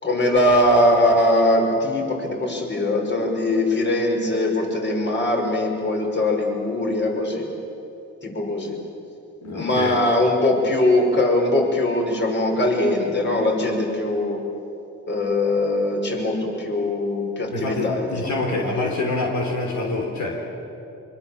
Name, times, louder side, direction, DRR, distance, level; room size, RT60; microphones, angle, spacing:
voice 1, 0.0-7.5 8.2-8.8 9.5-14.4 15.1-18.9, left 1 dB, 35° left, 1 dB, 5.7 m, -21 dB
voice 2, 9.4-10.0 17.5-20.5, left 3 dB, 70° left, -1 dB, 3.9 m, -26 dB
24.5 x 24.0 x 7.4 m, 2.8 s
cardioid pair, 90°, 30 cm